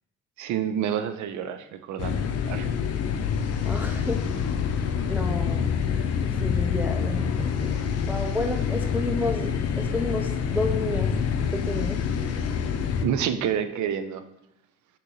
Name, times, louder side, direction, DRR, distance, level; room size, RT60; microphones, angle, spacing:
voice 1, 0.4-2.7 13.0-14.2, right 9 dB, 70° right, 11 dB, 0.5 m, -28 dB
sound 1, 2.0-13.0, left 7 dB, 55° left, 0.5 m, -26 dB
voice 2, 3.6-4.3 5.1-5.7 6.4-11.1 11.5-12.0, left 1 dB, 5° right, 3 dB, 0.3 m, -31 dB
6.1 x 2.9 x 2.7 m, 0.83 s
cardioid pair, 90°, 30 cm